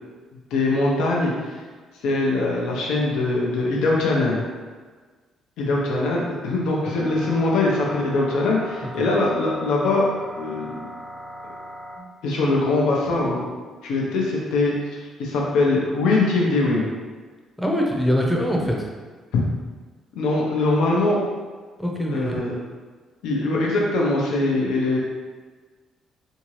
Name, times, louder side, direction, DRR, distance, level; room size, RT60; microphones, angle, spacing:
voice 1, 0.5-1.5 2.0-4.4 5.6-10.1 10.4-10.9 12.2-13.5 13.8-16.9 19.3-19.4 20.2-21.2 22.1-22.5 23.2-25.0, left 2 dB, 85° left, -3 dB, 0.6 m, -22 dB
sound 1, 7.0-12.0, equal, 35° left, 0.9 m, -39 dB
voice 2, 17.6-18.9 21.8-22.4, equal, ahead, -1 dB, 0.6 m, -23 dB
3.6 x 2.7 x 3.1 m, 1.4 s
cardioid pair, 120°, 0 cm